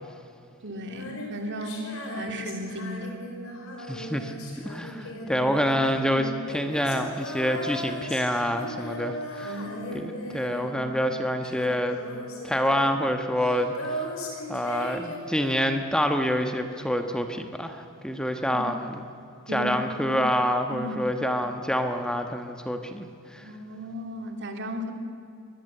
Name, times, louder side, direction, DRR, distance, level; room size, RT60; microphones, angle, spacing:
voice 1, 0.6-3.2 5.1-5.5 9.4-10.1 18.5-18.7 19.5-20.2 20.7-20.9 23.4-24.9, equal, 55° right, 5 dB, 2.7 m, -35 dB
Female singing, 0.8-11.2 11.4-15.9, equal, 70° left, 5.2 m, -38 dB
voice 2, 3.9-4.3 4.6-9.6 9.9-12.0 12.4-14.0 14.5-19.0 19.5-23.4, equal, 5° left, 6 dB, 1.3 m, -27 dB
24.0 x 19.5 x 8.0 m, 2.6 s
head